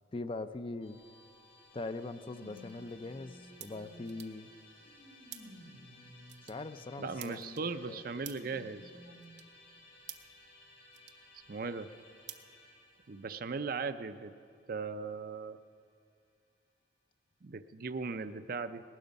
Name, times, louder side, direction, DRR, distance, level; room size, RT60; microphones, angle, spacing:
voice 1, 0.1-1.0 1.7-4.5 6.4-7.6 7.9-8.0, left 2 dB, 30° left, 11 dB, 0.4 m, -41 dB
Musical instrument, 0.8-16.0, left 2 dB, 75° left, 5.1 m, -60 dB
sound 1, 1.0-1.1 2.2-4.2 4.8-6.8 8.0-9.4 10.1-10.2 11.4-11.5, equal, 35° right, 4.9 m, -55 dB
sound 2, 1.8-13.3, right 11 dB, 65° right, 0.8 m, -55 dB
voice 2, 7.0-8.8 9.1-9.2 11.5-11.9 13.1-14.3 14.7-15.6 17.4-18.8, right 4 dB, 50° right, 11 dB, 0.5 m, -38 dB
19.0 x 12.0 x 5.3 m, 2.3 s
head